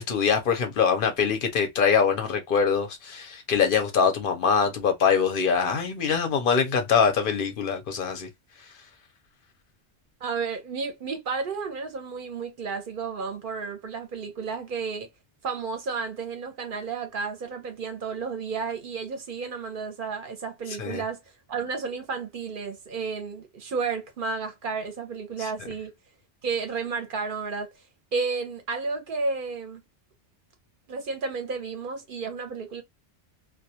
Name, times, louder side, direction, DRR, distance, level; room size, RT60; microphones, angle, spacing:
voice 1, 0.0-8.3 20.7-21.0 25.4-25.5, left 6 dB, 60° left, 0.6 m, -23 dB
voice 2, 10.2-15.1 15.4-21.2 21.5-25.9 26.4-27.7 28.1-29.8 30.9-32.8, right 4 dB, 55° right, 0.7 m, -32 dB
2.2 x 2.2 x 2.7 m
omnidirectional pair, 1.2 m